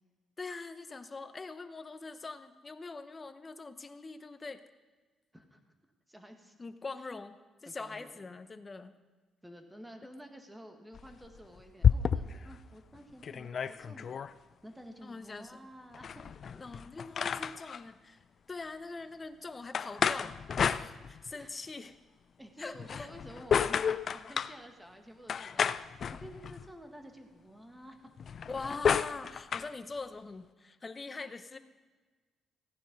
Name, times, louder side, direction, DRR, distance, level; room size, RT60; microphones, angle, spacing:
voice 1, 0.4-4.6 6.6-7.4 7.6-8.9 15.0-15.6 16.5-20.4 20.7-22.0 22.6-23.1 28.5-31.6, left 3 dB, 30° left, 10 dB, 0.9 m, -43 dB
voice 2, 6.1-6.5 7.0-7.1 7.6-8.2 9.4-14.1 14.6-16.2 21.3-21.5 22.4-25.8 26.1-28.1, equal, 5° right, 4 dB, 1.8 m, -51 dB
sound 1, 10.9-12.5 12.9-13.0 13.2-14.3 15.9-17.8 19.7-21.4 22.7-24.6 25.3-26.7 28.2-29.7, left 7 dB, 55° left, 0.4 m, -31 dB
15.5 x 9.8 x 5.4 m, 1.4 s
cardioid pair, 90°, 0 cm